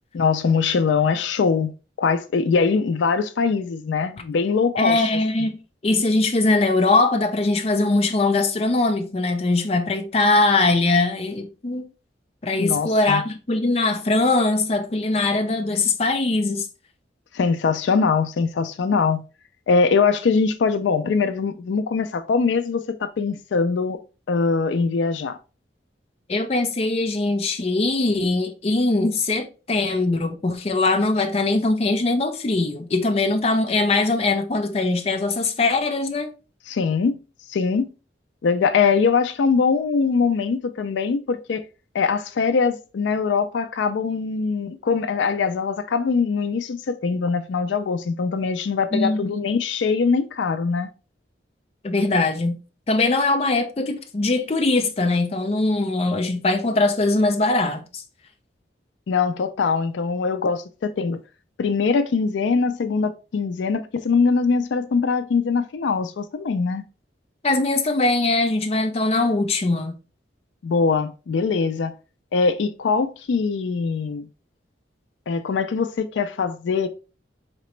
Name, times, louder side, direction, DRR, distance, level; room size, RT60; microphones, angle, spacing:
voice 1, 0.1-1.7 2.0-5.0 5.4-5.5 12.6-13.2 17.3-19.2 19.7-24.0 24.3-25.4 36.7-37.2 37.5-37.9 38.4-41.6 41.9-50.9 59.1-61.2 61.6-66.8 70.6-71.9 72.3-74.3 75.3-76.9, left 5 dB, 90° left, 0.4 m, -22 dB
voice 2, 4.8-5.6 5.8-11.8 12.4-16.7 26.3-36.3 48.9-49.3 51.8-52.6 52.9-58.0 67.4-69.9, left 2 dB, 35° left, 0.5 m, -21 dB
4.1 x 2.9 x 3.1 m
head